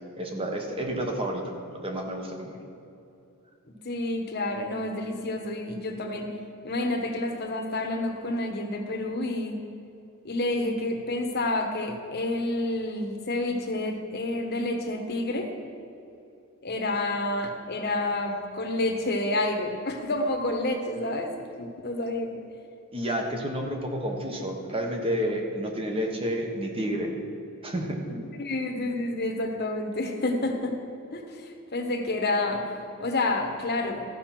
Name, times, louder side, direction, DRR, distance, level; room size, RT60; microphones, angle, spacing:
voice 1, 0.2-1.4 1.7-2.6 22.9-27.1 27.6-28.0, equal, 25° right, 2 dB, 1.2 m, -30 dB
voice 2, 3.8-6.3 6.6-9.6 10.2-15.5 16.6-22.4 28.1-30.8 31.1-32.7 33.0-34.0, left 2 dB, 45° left, 3 dB, 1.1 m, -29 dB
13.5 x 5.6 x 5.9 m, 2.8 s
head